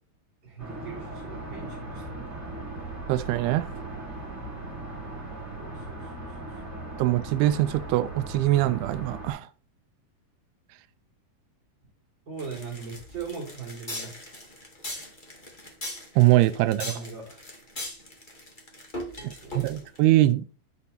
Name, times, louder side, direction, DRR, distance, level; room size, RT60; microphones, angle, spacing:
voice 1, 0.4-2.4 5.6-6.8 12.3-14.2 16.7-17.5 19.2-19.8, right 5 dB, 30° right, 4.6 m, -40 dB
sound 1, 0.6-9.3, right 2 dB, 5° right, 3.5 m, -38 dB
voice 2, 3.1-3.7 7.0-9.5 16.2-16.9 19.2-20.4, right 15 dB, 90° right, 2.6 m, -22 dB
sound 2, 12.4-20.0, left 1 dB, 20° left, 1.3 m, -39 dB
12.0 x 5.4 x 4.2 m
omnidirectional pair, 4.4 m